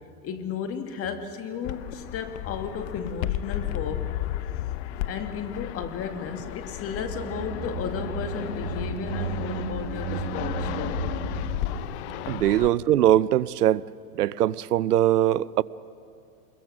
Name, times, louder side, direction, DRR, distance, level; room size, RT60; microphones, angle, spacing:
voice 1, 0.2-4.1 5.0-11.1, left 6 dB, 30° left, 1.9 m, -34 dB
Fixed-wing aircraft airplane, 1.6-12.7, left 13 dB, 50° left, 0.8 m, -33 dB
sound 1, 6.9-13.3 13.6-13.7, right 9 dB, 45° right, 1.5 m, -35 dB
voice 2, 12.3-13.8 14.2-15.6, right 12 dB, 90° right, 0.6 m, -21 dB
27.0 x 22.0 x 6.1 m
hypercardioid pair, 120°, 45 cm